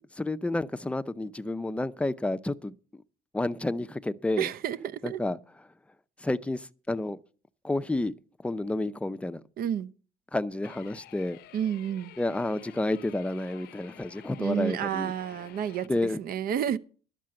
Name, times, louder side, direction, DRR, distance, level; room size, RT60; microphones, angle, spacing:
voice 1, 0.1-2.7 3.3-4.5 5.0-5.4 6.2-7.2 7.6-8.1 8.4-9.4 10.3-11.4 12.2-15.1 15.9-16.2, left 2 dB, 5° left, 0.6 m, -30 dB
voice 2, 4.4-5.2 9.6-9.9 11.5-12.1 14.4-16.8, right 9 dB, 60° right, 0.8 m, -30 dB
sound 1, 10.6-15.9, left 14 dB, 70° left, 0.7 m, -51 dB
12.0 x 6.7 x 7.6 m
cardioid pair, 110°, 17 cm